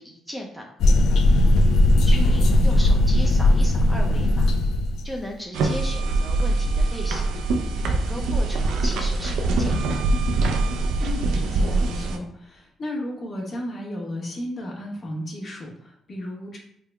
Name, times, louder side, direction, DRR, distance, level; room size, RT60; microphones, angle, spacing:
voice 1, 0.0-1.5 2.0-4.5 5.0-7.4 7.9-10.2, equal, ahead, 0 dB, 0.5 m, -36 dB
sound 1, 0.8-5.1, left 1 dB, 75° left, 0.3 m, -18 dB
voice 2, 2.2-3.0 11.0-16.6, left 1 dB, 45° left, -2 dB, 1.0 m, -34 dB
sound 2, 5.5-12.2, right 2 dB, 85° right, 0.4 m, -23 dB
3.6 x 2.1 x 3.3 m, 0.72 s
cardioid pair, 90°, 0 cm